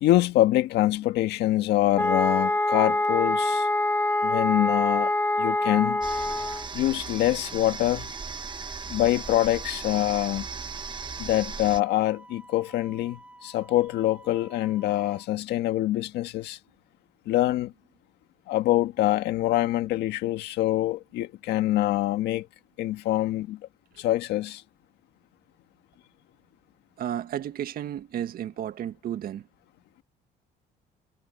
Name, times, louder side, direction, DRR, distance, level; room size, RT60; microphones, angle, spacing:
voice 1, 0.0-3.7 4.2-5.1 5.4-6.0 6.7-8.1 8.9-10.5 11.2-16.6 17.3-17.7 18.5-22.5 22.8-23.6 24.0-24.6, left 15 dB, 80° left, 1.7 m, -25 dB
sound 1, 2.0-6.7, left 2 dB, 10° left, 2.6 m, -25 dB
Wind instrument woodwind instrument, 5.4-15.3, right 1 dB, 10° right, 6.1 m, -50 dB
sound 2, 6.0-11.8, right 5 dB, 25° right, 1.3 m, -37 dB
voice 2, 27.0-29.5, right 10 dB, 60° right, 1.8 m, -33 dB
cardioid pair, 110°, 17 cm